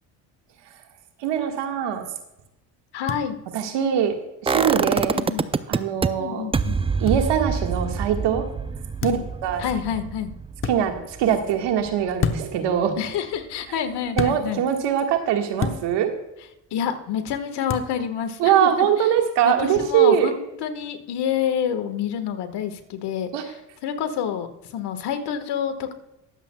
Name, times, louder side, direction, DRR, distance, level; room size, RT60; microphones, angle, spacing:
voice 1, 1.2-2.1 3.5-4.2 4.4-5.2 5.7-6.5 7.0-8.5 9.0-9.6 10.6-12.9 14.2-16.1 18.4-20.3 23.3-23.4, right 9 dB, 75° right, 5 dB, 1.7 m, -22 dB
voice 2, 2.9-3.3 5.1-5.5 6.2-6.7 9.0-9.2 9.6-10.3 13.0-14.6 16.7-19.1 19.4-23.5 23.8-25.9, left 8 dB, 70° left, 8 dB, 1.5 m, -28 dB
sound 1, 3.1-3.2 5.0-5.2 7.1-7.2 9.0-9.3 10.6-10.8 12.2-12.6 14.1-14.4 15.6-15.8 17.7-17.9, left 5 dB, 30° left, 1.0 m, -27 dB
sound 2, 4.5-6.1 6.5-12.4 12.7-12.8, right 5 dB, 15° right, 0.4 m, -26 dB
22.5 x 7.6 x 2.3 m, 0.92 s
supercardioid pair, 80°, 42 cm